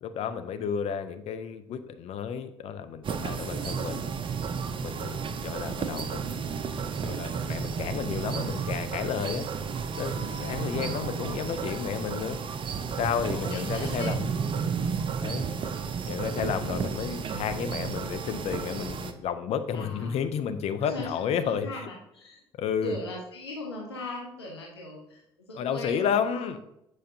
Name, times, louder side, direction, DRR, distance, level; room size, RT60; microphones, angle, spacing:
voice 1, 0.0-4.1 4.8-6.5 7.0-9.5 10.0-12.4 13.0-14.3 15.2-15.5 16.1-21.7 22.6-23.0 25.5-26.6, left 7 dB, 55° left, 9 dB, 0.6 m, -31 dB
sound 1, 3.0-19.1, right 6 dB, 40° right, 0.6 m, -32 dB
voice 2, 10.5-11.0 13.3-14.1 19.7-20.2 20.8-22.4 22.8-25.2 25.5-26.6, left 2 dB, 90° left, -1 dB, 0.8 m, -39 dB
7.8 x 4.9 x 2.8 m, 0.82 s
figure-of-eight pair, 50°, 13 cm